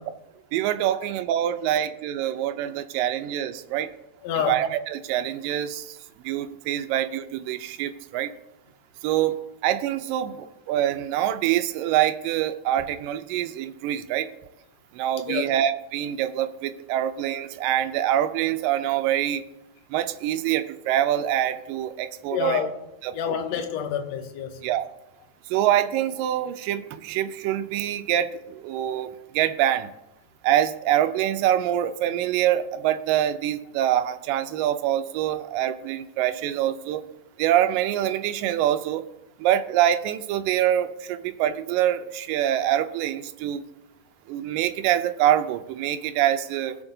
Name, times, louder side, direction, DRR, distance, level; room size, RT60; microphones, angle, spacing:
voice 1, 0.5-3.9 4.4-6.0 6.3-8.3 9.0-14.3 14.9-19.4 19.9-22.6 23.0-23.4 24.6-24.9 25.5-29.1 29.3-29.9 30.4-37.0 37.4-39.1 39.4-43.6 44.3-46.8, right 11 dB, 90° right, 2.2 m, -25 dB
voice 2, 4.2-4.6 15.3-15.5 22.3-22.7 23.1-24.6, left 8 dB, 70° left, 1.8 m, -27 dB
16.5 x 6.7 x 2.7 m
omnidirectional pair, 3.8 m